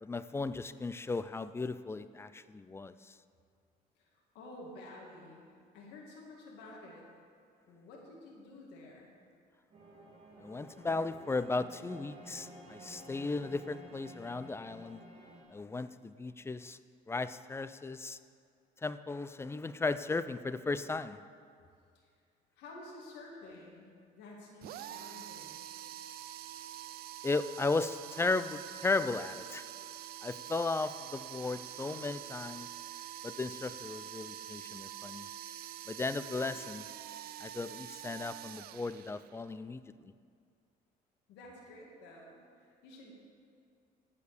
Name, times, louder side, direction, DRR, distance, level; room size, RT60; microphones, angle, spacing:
voice 1, 0.0-3.2 10.4-15.0 15.5-16.8 17.1-18.2 18.8-21.2 27.2-29.7 30.2-32.7 33.2-35.3 35.9-36.9 37.4-40.1, left 3 dB, 15° left, 13 dB, 0.3 m, -36 dB
voice 2, 4.0-5.5 5.7-7.1 7.7-9.1 21.9-22.1 22.6-25.6 41.3-43.1, left 2 dB, 90° left, -2 dB, 2.2 m, -51 dB
sound 1, 9.7-15.4, right 1 dB, 35° right, 2.6 m, -53 dB
sound 2, 24.6-39.5, right 12 dB, 65° right, 0.5 m, -46 dB
15.0 x 5.1 x 6.7 m, 2.3 s
cardioid pair, 110°, 17 cm